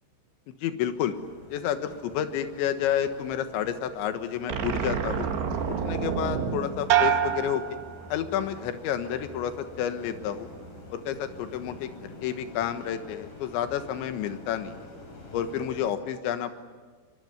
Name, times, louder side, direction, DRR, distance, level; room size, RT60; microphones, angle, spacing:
voice 1, 0.5-1.2 1.5-5.3 5.7-7.8 8.1-10.5 10.9-11.9 12.2-14.8 15.3-16.5, left 9 dB, 75° left, 9 dB, 3.6 m, -30 dB
sound 1, 0.9-15.9, left 2 dB, 45° left, 6.5 m, -48 dB
sound 2, 4.5-7.8, right 6 dB, 65° right, 3.8 m, -31 dB
sound 3, 6.9-8.6 9.0-9.6, right 10 dB, 90° right, 1.8 m, -27 dB
24.0 x 23.0 x 9.6 m, 1.5 s
omnidirectional pair, 5.5 m